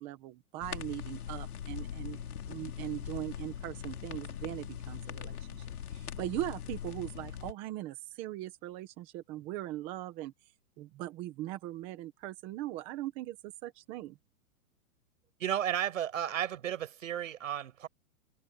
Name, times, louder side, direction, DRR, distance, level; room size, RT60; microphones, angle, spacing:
voice 1, 0.0-2.2 2.5-10.3 10.8-14.2, right 15 dB, 15° right, 0.9 m, -40 dB
sound 1, 0.6-7.5, left 9 dB, 85° left, 3.4 m, -41 dB
voice 2, 15.4-17.9, right 10 dB, 60° right, 5.6 m, -33 dB
hypercardioid pair, 175°, 43 cm